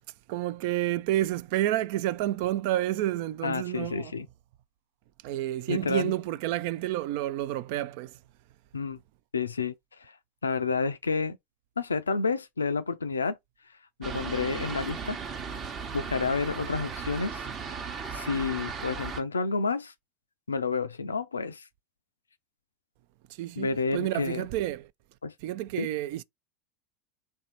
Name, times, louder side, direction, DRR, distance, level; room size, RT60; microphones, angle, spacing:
voice 1, 0.3-4.1 5.2-8.1 23.4-24.9 25.4-26.2, right 14 dB, 55° right, 0.3 m, -29 dB
voice 2, 3.4-4.3 5.7-6.1 8.7-9.0 9.3-9.7 10.4-11.4 11.8-13.4 14.0-15.2 15.9-17.4 18.1-19.9 20.5-21.6 23.6-24.5 25.2-25.3 25.8-25.9, left 4 dB, 80° left, 0.4 m, -29 dB
Fixed-wing aircraft airplane, 14.0-19.2, right 5 dB, 35° right, 0.9 m, -36 dB
3.3 x 2.6 x 4.4 m
figure-of-eight pair, 80°, 0 cm